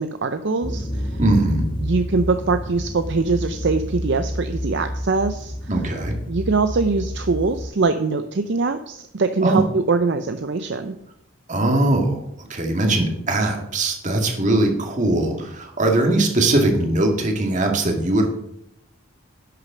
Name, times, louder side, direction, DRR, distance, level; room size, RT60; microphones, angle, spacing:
voice 1, 0.0-1.2 1.8-5.5 6.3-11.0, right 3 dB, 55° right, 9 dB, 0.6 m, -22 dB
sound 1, 0.6-7.7, equal, 20° left, 1.3 m, -29 dB
voice 2, 1.2-1.7 5.7-6.2 9.4-9.6 11.5-12.2 12.5-18.3, right 2 dB, 35° right, 2 dB, 2.0 m, -20 dB
11.0 x 6.5 x 6.2 m, 0.76 s
head